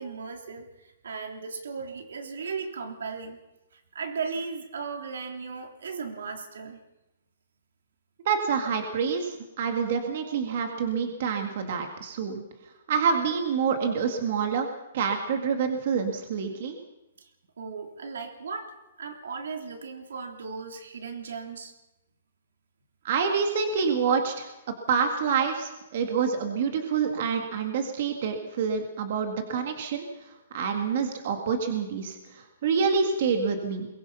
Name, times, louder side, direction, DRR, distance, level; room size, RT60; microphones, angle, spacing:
voice 1, 0.0-3.4 3.7-6.8 17.2-17.3 17.6-18.7 19.0-21.7, right 5 dB, 85° right, 4 dB, 3.5 m, -36 dB
voice 2, 8.3-12.4 12.9-14.7 14.9-16.8 23.0-24.5 24.9-33.9, right 6 dB, 40° right, 5 dB, 2.2 m, -27 dB
22.5 x 20.0 x 5.8 m, 0.95 s
hypercardioid pair, 175°, 0 cm